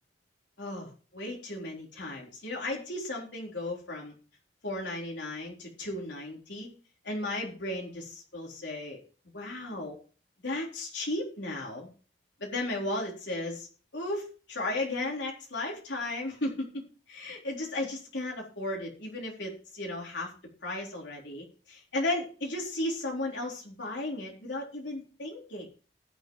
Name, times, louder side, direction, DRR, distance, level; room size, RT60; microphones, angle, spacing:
voice 1, 0.6-4.1 4.6-6.7 7.0-9.0 9.3-10.0 10.4-11.9 12.4-20.3 20.6-25.7, left 2 dB, 75° left, -1 dB, 4.0 m, -35 dB
19.5 x 6.8 x 3.1 m, 0.38 s
head